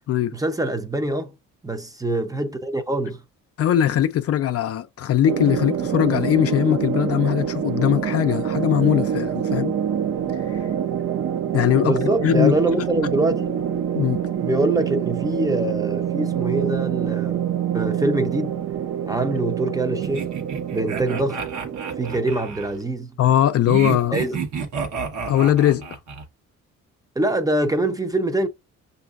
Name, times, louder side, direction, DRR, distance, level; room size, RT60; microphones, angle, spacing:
voice 1, 0.3-1.3 1.6-3.2 11.8-13.5 14.4-17.4 17.7-18.6 19.1-20.3 20.7-21.4 22.0-23.1 24.1-24.4 27.2-28.5, right 1 dB, 10° right, 0.6 m, -24 dB
voice 2, 3.6-9.8 10.5-10.6 11.5-12.5 13.9-14.2 23.2-24.2 25.3-25.8, left 11 dB, 50° left, 0.4 m, -20 dB
sound 1, 5.2-22.3, right 9 dB, 50° right, 0.6 m, -26 dB
sound 2, 20.0-22.7 23.7-26.3, right 6 dB, 70° right, 1.2 m, -30 dB
5.8 x 2.6 x 2.4 m
cardioid pair, 90°, 30 cm